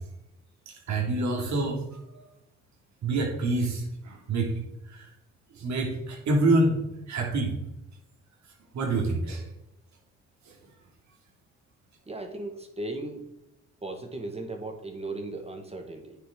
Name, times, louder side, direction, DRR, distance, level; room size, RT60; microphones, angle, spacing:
voice 1, 0.7-2.0 3.0-4.5 4.9-5.1 5.5-6.8 7.1-7.5 8.7-9.4, right 2 dB, 65° right, 0 dB, 2.7 m, -26 dB
voice 2, 12.1-13.2 13.8-16.2, right 2 dB, 20° right, 4 dB, 1.7 m, -36 dB
9.6 x 7.0 x 3.8 m, 0.88 s
cardioid pair, 90°, 30 cm